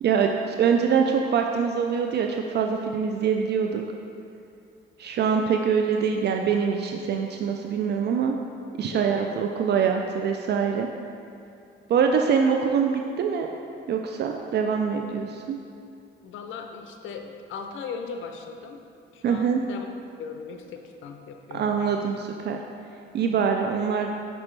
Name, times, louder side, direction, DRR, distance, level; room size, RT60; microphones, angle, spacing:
voice 1, 0.0-3.8 5.0-8.4 8.8-10.9 11.9-13.5 13.9-15.6 19.2-19.6 21.5-22.6 23.1-24.1, right 6 dB, 60° right, 3 dB, 0.4 m, -24 dB
voice 2, 8.9-9.4 9.7-9.9 16.2-18.8 19.1-19.9 20.2-21.9, left 5 dB, 80° left, 5 dB, 0.6 m, -38 dB
5.9 x 5.2 x 3.2 m, 2.6 s
cardioid pair, 90°, 20 cm